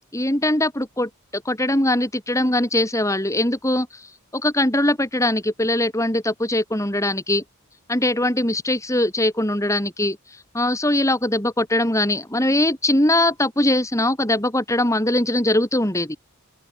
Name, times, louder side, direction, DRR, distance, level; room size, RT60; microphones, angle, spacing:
voice 1, 0.1-7.4 7.9-10.2 10.5-16.2, left 1 dB, 15° left, 4.1 m, -21 dB
open air
head